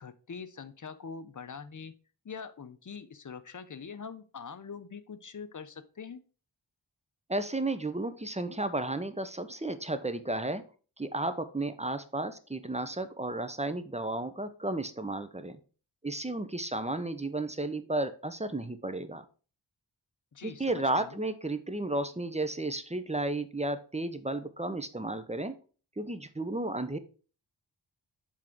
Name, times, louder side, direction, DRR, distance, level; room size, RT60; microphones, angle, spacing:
voice 1, 0.0-1.9 2.2-6.2 20.3-21.2, left 6 dB, 45° left, 12 dB, 0.7 m, -43 dB
voice 2, 7.3-10.6 11.0-15.6 16.0-19.2 20.4-25.6 26.0-27.0, right 2 dB, 15° right, 11 dB, 0.6 m, -33 dB
7.4 x 3.6 x 4.5 m, 0.38 s
wide cardioid pair, 60°, 44 cm